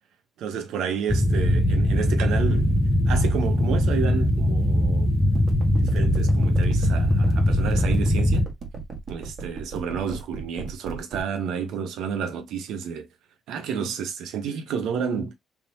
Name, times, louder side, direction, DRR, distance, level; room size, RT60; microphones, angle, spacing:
voice 1, 0.4-2.7 3.1-5.1 5.8-8.5 9.1-13.1 13.5-15.3, right 7 dB, 85° right, 0.9 m, -30 dB
sound 1, 1.1-8.5, equal, 10° left, 0.7 m, -21 dB
sound 2, 5.2-11.2, right 5 dB, 55° right, 1.4 m, -36 dB
3.6 x 3.0 x 2.7 m
cardioid pair, 90°, 0 cm